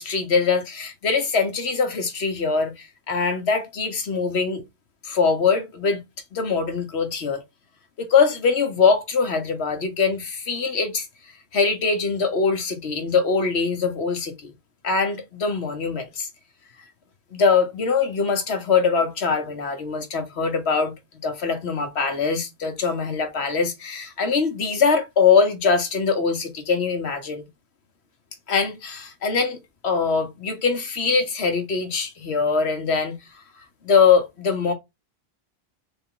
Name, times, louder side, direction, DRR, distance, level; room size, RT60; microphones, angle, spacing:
voice 1, 0.0-4.6 5.0-6.0 6.3-7.4 8.0-11.1 11.5-14.5 14.8-16.3 17.3-20.9 21.2-27.4 28.5-33.2 33.8-34.7, left 5 dB, 85° left, 1.4 m, -22 dB
3.8 x 3.5 x 3.7 m
omnidirectional pair, 1.1 m